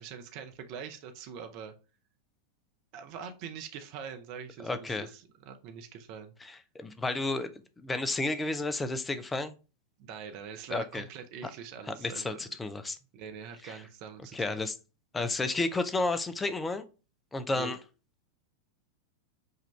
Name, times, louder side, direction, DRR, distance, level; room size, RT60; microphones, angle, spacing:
voice 1, 0.0-1.7 2.9-6.3 10.0-12.5 13.1-14.6 17.5-17.8, right 7 dB, 45° right, 0.8 m, -43 dB
voice 2, 4.6-5.1 6.4-9.5 10.7-11.0 11.4-11.5 11.9-13.0 13.6-13.8 14.3-14.8 15.1-16.8 17.3-17.8, left 2 dB, 10° left, 0.5 m, -32 dB
5.5 x 2.5 x 3.2 m
figure-of-eight pair, 90°, 0 cm